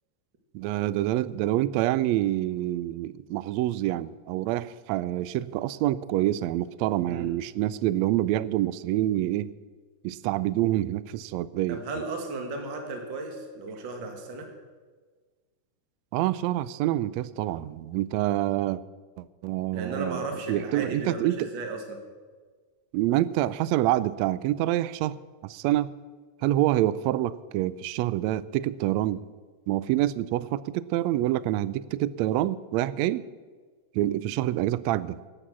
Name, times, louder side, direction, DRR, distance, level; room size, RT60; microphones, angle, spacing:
voice 1, 0.5-9.5 10.0-11.8 16.1-18.8 19.2-20.2 20.5-21.5 22.9-25.2 25.4-25.9 26.4-29.2 29.7-33.3 33.9-35.2, right 14 dB, 85° right, 17 dB, 1.5 m, -26 dB
voice 2, 11.7-14.5 19.7-22.0, right 3 dB, 40° right, 3 dB, 2.1 m, -35 dB
18.0 x 8.9 x 6.1 m, 1.4 s
omnidirectional pair, 3.6 m